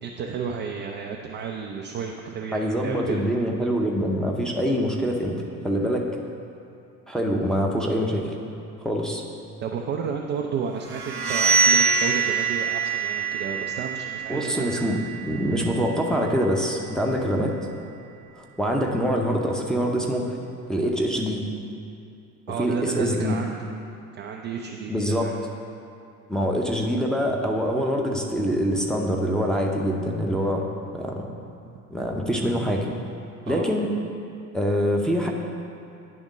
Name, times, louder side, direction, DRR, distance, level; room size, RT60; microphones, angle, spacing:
voice 1, 0.0-3.2 9.6-14.8 22.5-23.6 24.1-25.4 33.5-33.7, right 6 dB, 25° right, 1 dB, 0.4 m, -32 dB
voice 2, 2.5-6.1 7.1-8.3 8.8-9.2 14.3-17.5 18.4-20.4 20.7-21.4 22.6-23.3 24.9-25.3 26.3-30.7 30.9-31.3 31.9-32.9 33.5-33.9 34.5-35.3, equal, ahead, -2 dB, 0.7 m, -25 dB
sound 1, 10.9-16.5, right 5 dB, 90° right, 0.7 m, -25 dB
9.6 x 3.6 x 5.0 m, 2.7 s
figure-of-eight pair, 65°, 43 cm